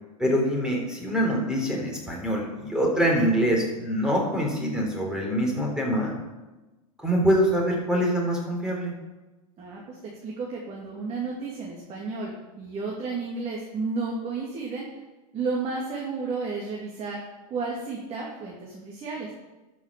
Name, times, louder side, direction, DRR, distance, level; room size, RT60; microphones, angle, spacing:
voice 1, 0.2-6.1 7.0-8.9, equal, 5° right, -1 dB, 3.8 m, -24 dB
voice 2, 9.6-14.9 15.3-17.2 17.5-19.3, right 4 dB, 35° right, -2 dB, 2.6 m, -32 dB
12.5 x 6.3 x 6.9 m, 1.1 s
supercardioid pair, 130°, 19 cm